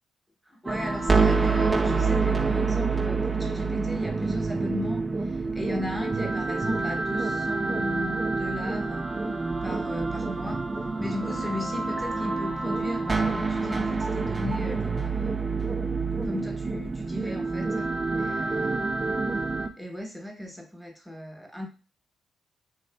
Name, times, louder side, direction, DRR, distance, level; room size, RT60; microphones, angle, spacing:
voice 1, 0.5-9.0 9.6-10.6 11.0-15.4 16.2-17.9 18.2-19.0 19.8-21.7, left 1 dB, ahead, 2 dB, 0.9 m, -36 dB
sound 1, 0.7-19.7, right 4 dB, 30° right, 0.3 m, -27 dB
2.6 x 2.3 x 2.2 m, 0.35 s
hypercardioid pair, 45°, 0 cm